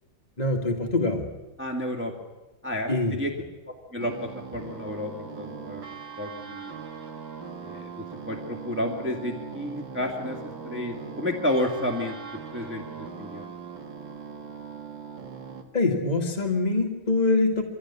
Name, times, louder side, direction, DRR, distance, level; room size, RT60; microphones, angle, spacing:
voice 1, 0.4-1.3 2.9-3.2 15.7-17.6, left 2 dB, 20° left, 1 dB, 1.9 m, -24 dB
voice 2, 1.6-2.1 2.6-3.3 3.9-5.9 6.2-6.7 7.6-10.4 10.6-12.2 12.5-12.8 13.2-13.5, left 1 dB, 5° right, 1 dB, 2.3 m, -31 dB
sound 1, 4.0-15.6, right 6 dB, 65° right, 2.8 m, -40 dB
24.0 x 17.0 x 9.9 m, 1.1 s
omnidirectional pair, 2.2 m